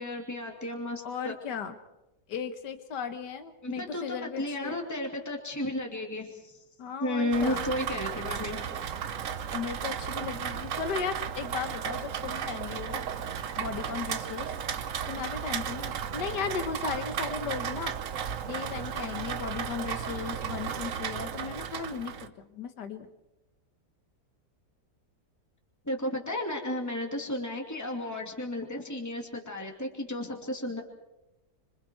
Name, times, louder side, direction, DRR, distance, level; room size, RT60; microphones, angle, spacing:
voice 1, 0.0-1.3 3.6-6.6 7.0-8.6 25.8-30.8, left 1 dB, 10° left, 1 dB, 2.6 m, -33 dB
voice 2, 1.0-1.8 2.3-4.8 6.8-7.6 9.5-13.0 13.6-14.6 15.1-17.9 18.5-23.1, left 6 dB, 85° left, 9 dB, 1.8 m, -36 dB
Rain, 7.3-22.3, right 8 dB, 55° right, 1.1 m, -34 dB
26.5 x 24.5 x 4.6 m, 0.96 s
omnidirectional pair, 1.8 m